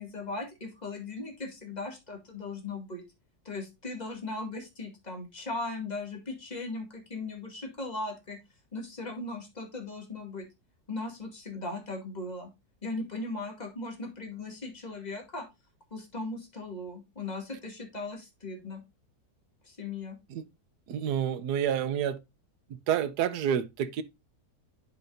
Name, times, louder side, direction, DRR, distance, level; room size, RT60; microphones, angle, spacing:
voice 1, 0.0-3.0 3.4-8.4 8.7-10.5 10.9-12.5 12.8-15.5 15.9-18.8 19.6-20.2, left 2 dB, 25° left, 2.4 m, -38 dB
voice 2, 20.9-22.2 22.9-24.0, right 9 dB, 65° right, 1.3 m, -28 dB
10.0 x 5.5 x 2.6 m
omnidirectional pair, 1.9 m